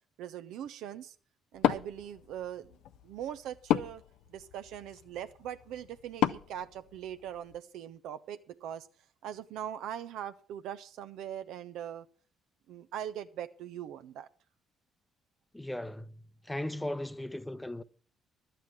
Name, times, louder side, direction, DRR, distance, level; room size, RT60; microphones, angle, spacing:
voice 1, 0.2-1.1 1.5-2.8 3.0-4.0 4.3-8.9 9.2-12.1 12.7-14.3, right 10 dB, 70° right, 0.7 m, -41 dB
Wood, 1.5-7.6, left 11 dB, 70° left, 0.5 m, -35 dB
voice 2, 15.5-16.1 16.4-17.8, left 1 dB, 10° left, 0.8 m, -37 dB
11.5 x 9.3 x 6.1 m
hypercardioid pair, 50°, 0 cm